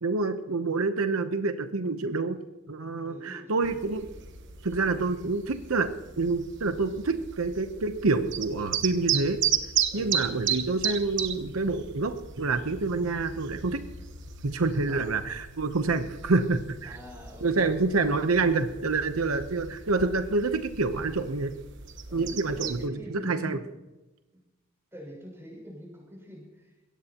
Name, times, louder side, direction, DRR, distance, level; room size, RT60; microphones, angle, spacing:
voice 1, 0.0-2.4 2.7-4.0 4.6-9.4 9.9-13.8 14.4-17.0 17.4-21.6 22.1-23.6, right 3 dB, 80° right, 8 dB, 0.9 m, -27 dB
voice 2, 3.0-4.3 9.9-10.2 14.9-15.2 16.8-18.1 22.1-23.7 24.9-26.9, equal, 10° right, -1 dB, 6.8 m, -44 dB
sound 1, 3.6-22.9, right 8 dB, 60° right, 1.2 m, -35 dB
22.0 x 17.5 x 3.0 m, 1.1 s
head